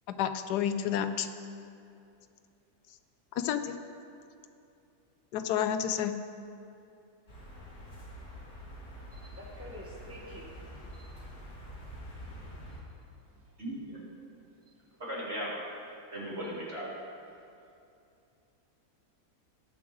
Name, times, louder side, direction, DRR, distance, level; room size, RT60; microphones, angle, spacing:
voice 1, 0.1-1.3 3.4-3.8 5.3-6.2, left 9 dB, 85° left, 9 dB, 1.2 m, -30 dB
sound 1, 7.3-12.8, equal, 65° left, 2.7 m, -46 dB
voice 2, 8.9-10.6 10.8-11.5 11.8-11.9 12.3-12.5 12.8-13.0 13.3-13.6 14.3-15.0 17.3-17.4, equal, 10° right, -4 dB, 0.8 m, -51 dB
voice 3, 13.6-14.0 15.0-15.6 16.1-16.9, equal, 40° right, -8 dB, 3.0 m, -37 dB
19.5 x 7.1 x 3.1 m, 2.6 s
omnidirectional pair, 1.7 m